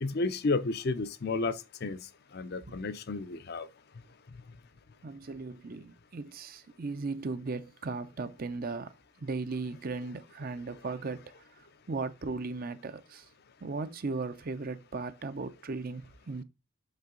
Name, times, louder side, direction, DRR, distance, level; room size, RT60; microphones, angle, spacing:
voice 1, 0.0-2.0 2.3-3.7, left 3 dB, 45° left, 0.5 m, -32 dB
voice 2, 5.0-8.9 9.2-11.2 11.6-13.3 13.6-16.4, right 3 dB, 40° right, 0.5 m, -37 dB
5.8 x 5.6 x 3.7 m
head